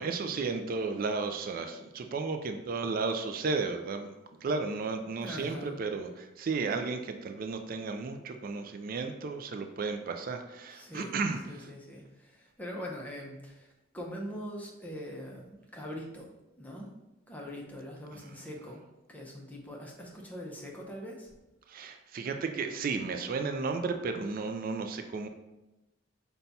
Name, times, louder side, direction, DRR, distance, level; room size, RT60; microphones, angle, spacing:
voice 1, 0.0-4.1 4.4-11.7 18.1-18.5 21.7-25.3, right 4 dB, 40° right, 6 dB, 0.3 m, -34 dB
voice 2, 5.2-5.7 10.8-11.1 11.5-12.0 12.6-13.5 13.9-16.3 16.6-16.9 17.3-18.8 19.1-21.3, equal, 5° left, -1 dB, 0.6 m, -42 dB
5.5 x 2.3 x 4.0 m, 0.99 s
head